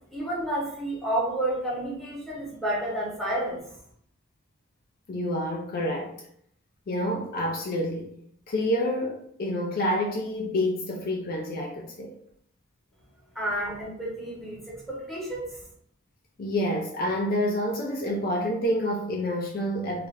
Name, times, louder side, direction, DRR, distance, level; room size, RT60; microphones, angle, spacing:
voice 1, 0.1-3.6 13.3-15.6, right 1 dB, ahead, -6 dB, 0.8 m, -30 dB
voice 2, 5.1-6.1 6.9-8.1 8.5-12.1 16.4-20.1, equal, 50° left, 0 dB, 0.4 m, -28 dB
2.4 x 2.1 x 3.2 m, 0.68 s
head